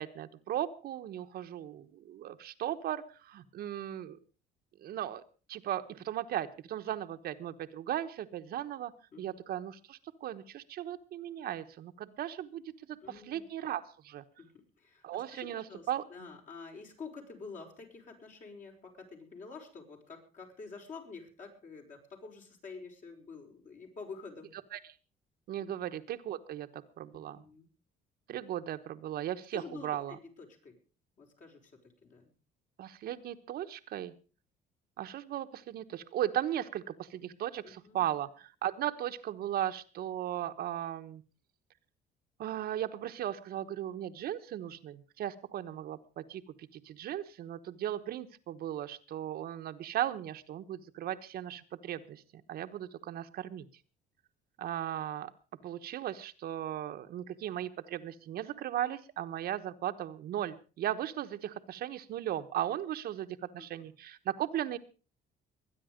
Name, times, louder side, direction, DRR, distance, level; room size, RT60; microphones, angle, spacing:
voice 1, 0.0-4.2 4.8-5.2 5.5-8.9 9.2-14.2 15.0-16.0 24.7-24.8 25.5-27.4 28.3-30.2 32.8-34.1 35.0-41.2 42.4-46.4 46.7-53.7 54.6-55.3 55.6-64.8, right 11 dB, 65° right, 8 dB, 1.1 m, -37 dB
voice 2, 13.0-13.4 14.4-14.5 14.8-24.5 25.6-25.7 27.1-27.7 29.5-30.8 31.2-31.7 32.0-32.3 37.6-38.1 63.6-63.7, left 4 dB, 50° left, 2 dB, 5.5 m, -48 dB
22.0 x 9.9 x 5.1 m, 0.36 s
cardioid pair, 110°, 17 cm